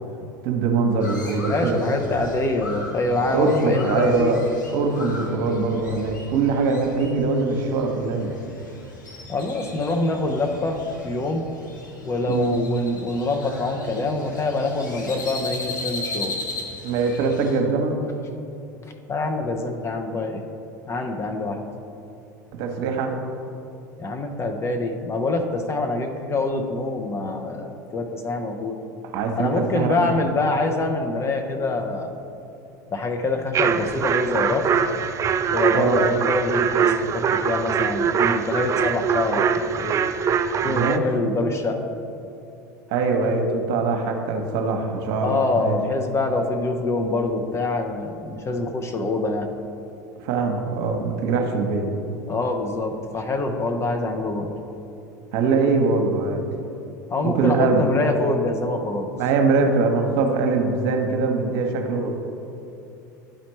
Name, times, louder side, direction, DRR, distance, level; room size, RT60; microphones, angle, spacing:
voice 1, 0.4-1.9 3.3-4.4 4.7-8.4 12.3-12.5 16.8-18.0 22.5-23.1 29.1-30.1 35.7-36.0 40.7-41.0 42.9-45.8 50.2-51.9 55.3-56.4 57.2-57.8 59.2-62.1, right 4 dB, 60° right, 3 dB, 0.9 m, -22 dB
Crow, 1.0-17.6, left 2 dB, 85° left, 0.9 m, -37 dB
voice 2, 1.4-4.3 9.3-10.8 11.0-11.4 12.0-16.3 19.1-20.4 20.9-21.6 24.0-28.8 29.4-32.1 32.9-34.7 35.5-40.0 40.6-41.8 45.2-49.5 52.3-54.5 57.1-59.1, left 2 dB, 30° left, 5 dB, 0.8 m, -25 dB
sound 1, 33.5-41.0, right 7 dB, 30° right, 0.4 m, -23 dB
11.5 x 4.2 x 3.1 m, 2.8 s
hypercardioid pair, 80°, 10 cm